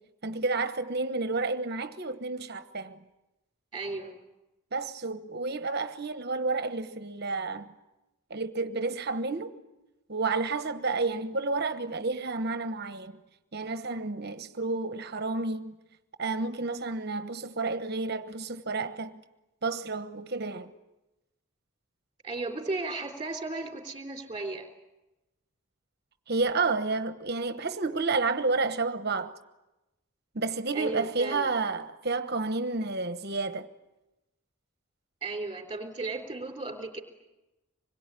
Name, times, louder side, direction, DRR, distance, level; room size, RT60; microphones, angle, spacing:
voice 1, 0.2-3.0 4.7-7.7 8.3-9.6 10.1-13.2 13.5-15.8 16.2-19.1 19.6-20.7 26.3-29.4 30.3-33.7, right 3 dB, 50° right, 1.1 m, -30 dB
voice 2, 3.7-4.2 22.2-24.7 30.7-31.5 35.2-37.0, right 3 dB, 20° right, 3.6 m, -35 dB
26.0 x 22.0 x 9.9 m
head